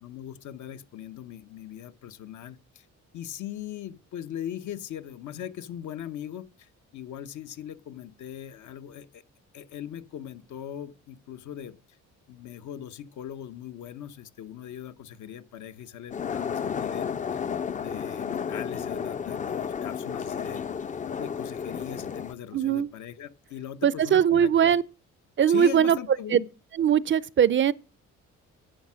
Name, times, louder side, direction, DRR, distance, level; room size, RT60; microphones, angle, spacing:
voice 1, 0.0-2.9 3.1-9.2 9.5-11.8 12.3-17.4 17.8-20.6 21.2-24.7 25.5-26.5, left 10 dB, 75° left, 1.0 m, -40 dB
sound 1, 16.1-22.3, left 7 dB, 25° left, 0.4 m, -32 dB
voice 2, 22.5-22.9 23.8-24.8 25.4-26.0 26.3-26.4 26.8-27.7, right 9 dB, 40° right, 0.4 m, -21 dB
10.0 x 7.4 x 6.1 m
cardioid pair, 90°, 30 cm